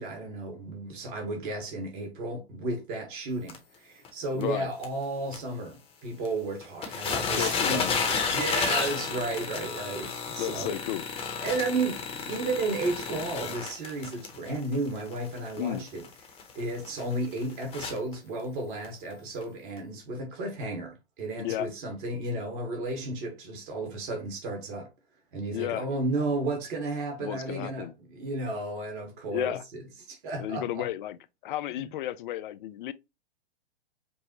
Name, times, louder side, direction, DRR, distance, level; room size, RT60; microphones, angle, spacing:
voice 1, 0.0-8.0 8.3-10.8 11.4-16.0 16.5-24.9 25.3-30.9, right 2 dB, 50° right, 1.5 m, -33 dB
sound 1, 3.5-3.6 4.1-4.2 4.4-4.5 4.8-4.9 5.3-5.4 6.3-6.4 6.6-18.2 18.8-18.9 19.4-19.5, left 5 dB, 20° left, 0.9 m, -32 dB
voice 2, 4.3-4.7 7.1-8.0 10.4-11.0 15.6-15.8 21.4-21.7 25.5-25.9 27.2-27.9 29.3-29.6 30.4-31.2 31.4-32.9, left 13 dB, 50° left, 0.4 m, -33 dB
5.2 x 2.1 x 2.9 m
hypercardioid pair, 115°, 32 cm